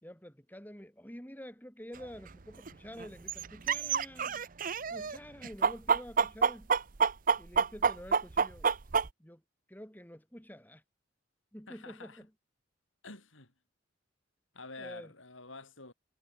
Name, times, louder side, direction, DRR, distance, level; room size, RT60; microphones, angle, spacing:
voice 1, 0.0-4.5 4.9-6.7 7.4-8.7 9.2-9.4 9.7-10.8 11.5-12.3 14.8-15.1, equal, 10° left, 4.6 m, -48 dB
sound 1, 2.0-2.1 2.7-2.8 3.0-5.2 5.4-9.1, right 6 dB, 45° right, 0.7 m, -27 dB
voice 2, 11.7-12.2 13.0-13.5 14.5-15.9, left 3 dB, 75° left, 7.1 m, -48 dB
head